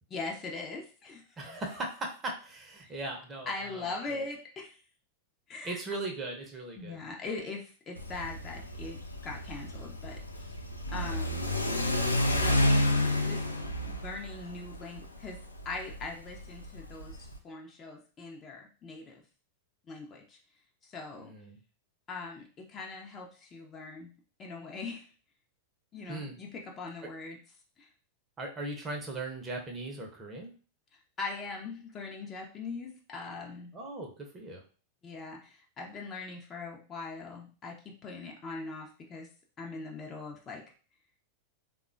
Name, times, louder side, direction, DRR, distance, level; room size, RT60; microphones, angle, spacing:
voice 1, 0.1-1.2 2.8-2.9 3.5-4.8 5.5-5.8 6.8-10.5 10.9-11.4 12.3-12.7 13.2-13.4 13.9-19.2 19.9-20.4 20.8-21.3 22.1-24.1 24.4-25.1 25.9-27.4 27.8-27.9 31.2-33.7 35.0-39.3 39.6-40.6, left 3 dB, 25° left, 0 dB, 0.6 m, -41 dB
voice 2, 1.4-3.9 5.6-7.0 11.1-11.2 21.1-21.6 26.1-26.4 28.4-30.5 33.7-34.6, right 2 dB, 20° right, 2 dB, 0.7 m, -38 dB
Car / Accelerating revving vroom, 8.0-17.4, left 1 dB, 85° left, 0.4 m, -30 dB
3.5 x 2.2 x 2.4 m, 0.38 s
figure-of-eight pair, 90°, 0 cm